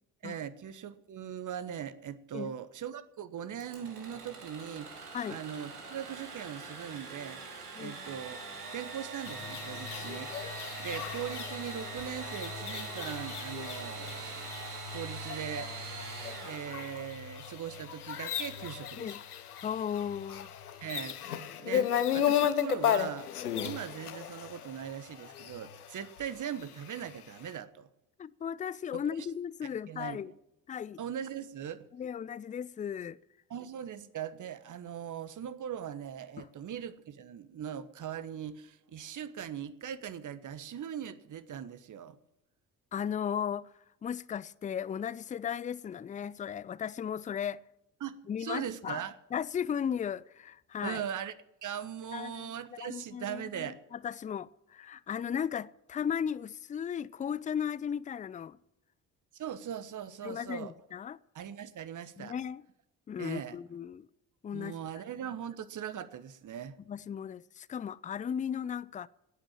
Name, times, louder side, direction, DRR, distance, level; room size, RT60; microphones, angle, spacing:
voice 1, 0.2-7.4 7.8-15.7 16.4-19.1 20.8-21.1 21.6-23.3 23.6-27.9 28.9-29.3 29.9-30.3 31.0-31.9 33.5-42.2 48.0-49.1 50.8-51.3 51.6-53.8 59.3-60.7 61.3-62.3 63.2-63.6 64.5-66.8, right 9 dB, 40° right, 1.3 m, -40 dB
Engine / Sawing, 3.6-17.3, right 4 dB, 85° right, 1.9 m, -43 dB
sound 1, 9.2-27.1, left 9 dB, 85° left, 0.9 m, -35 dB
voice 2, 19.6-20.5 21.7-21.9 28.2-30.3 30.7-31.0 31.9-33.2 36.4-36.5 42.9-43.7 44.0-47.6 48.3-49.0 49.3-51.0 52.1-58.6 60.2-61.2 62.2-62.6 63.1-64.1 64.4-64.7 66.9-69.1, left 8 dB, 20° left, 0.5 m, -36 dB
18.0 x 9.1 x 7.4 m
figure-of-eight pair, 45°, 45 cm